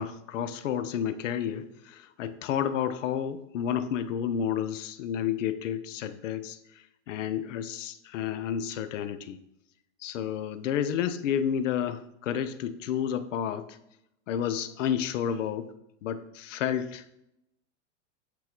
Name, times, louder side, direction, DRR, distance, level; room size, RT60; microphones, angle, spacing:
voice 1, 0.0-6.6 7.1-9.4 10.0-13.7 14.3-15.7 16.0-17.0, left 9 dB, 85° left, 13 dB, 0.7 m, -30 dB
8.3 x 4.0 x 4.3 m, 0.82 s
supercardioid pair, 160°, 37 cm